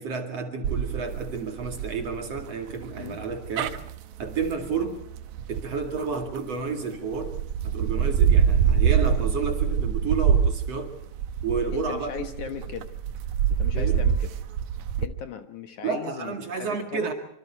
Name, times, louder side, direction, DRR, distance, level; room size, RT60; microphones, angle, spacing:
voice 1, 0.0-3.8 4.2-5.0 5.5-7.3 7.6-10.9 11.4-12.1 13.7-14.0 15.8-17.1, right 5 dB, 45° right, 5 dB, 3.0 m, -31 dB
sound 1, 0.6-6.6 7.1-15.1, right 8 dB, 70° right, 2.0 m, -25 dB
voice 2, 11.7-12.9 13.5-14.3 15.0-17.1, left 8 dB, 65° left, 8 dB, 2.5 m, -38 dB
25.5 x 25.5 x 4.5 m, 0.69 s
omnidirectional pair, 4.2 m